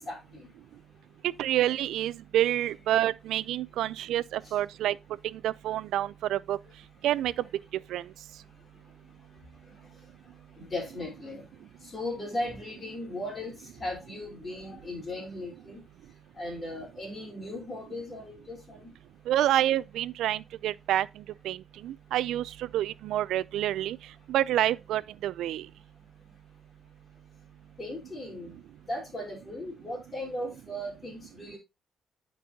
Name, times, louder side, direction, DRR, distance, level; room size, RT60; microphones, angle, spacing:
voice 1, 0.1-0.5 4.4-4.5 10.6-11.4 11.9-13.5 13.8-15.8 16.4-18.9 27.8-28.6 28.9-31.6, left 1 dB, 30° left, 3.9 m, -37 dB
voice 2, 1.4-5.0 5.2-6.6 7.0-7.3 7.9-8.0 19.3-24.0 24.3-25.7, right 13 dB, 90° right, 0.3 m, -28 dB
10.0 x 5.3 x 2.8 m
cardioid pair, 125°, 0 cm